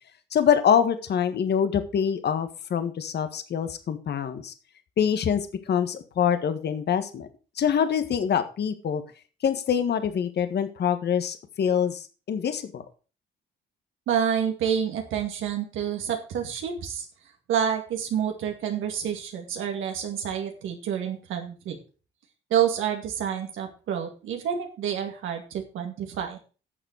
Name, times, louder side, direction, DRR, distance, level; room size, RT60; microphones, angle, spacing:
voice 1, 0.3-4.5 5.0-7.3 7.6-9.0 9.4-12.8, left 8 dB, 60° left, 10 dB, 1.6 m, -25 dB
voice 2, 14.1-17.1 17.5-21.8 22.5-26.4, right 8 dB, 85° right, 3 dB, 2.2 m, -28 dB
11.0 x 7.0 x 6.3 m, 0.36 s
cardioid pair, 90°, 20 cm